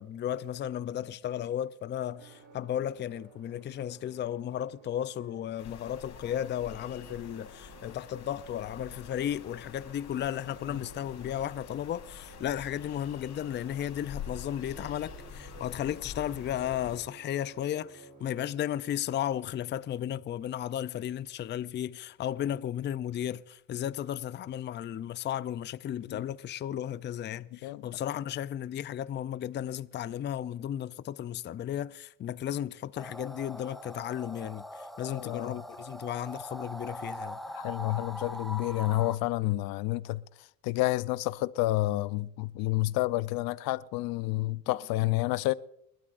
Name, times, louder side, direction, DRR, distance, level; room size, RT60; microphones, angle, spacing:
voice 1, 0.0-37.4 44.7-44.8, left 10 dB, 30° left, 0.5 m, -34 dB
sound 1, 2.2-18.5, right 4 dB, 65° right, 3.4 m, -54 dB
sound 2, 5.6-17.0, left 7 dB, 50° left, 3.1 m, -47 dB
sound 3, 33.0-39.2, equal, ahead, 0.9 m, -42 dB
voice 2, 35.1-35.6 37.5-40.2 40.6-45.5, left 18 dB, 75° left, 0.6 m, -29 dB
28.5 x 12.5 x 2.5 m
cardioid pair, 115°, 36 cm